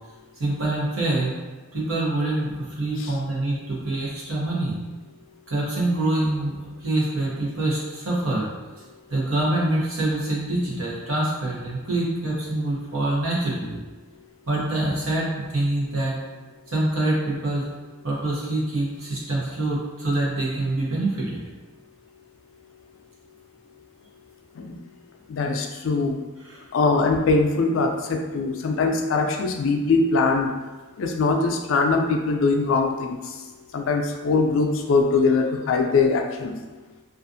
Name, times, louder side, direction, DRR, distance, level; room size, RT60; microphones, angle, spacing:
voice 1, 0.4-1.4 1.7-4.8 5.5-8.5 9.1-13.8 14.5-16.2 16.7-17.6 18.0-21.4 26.4-26.6, right 2 dB, 90° right, -6 dB, 0.9 m, -25 dB
voice 2, 25.3-26.2 26.7-30.5 31.0-33.2 33.7-36.5, left 4 dB, 70° left, 4 dB, 0.3 m, -22 dB
2.5 x 2.4 x 2.5 m, 1.2 s
head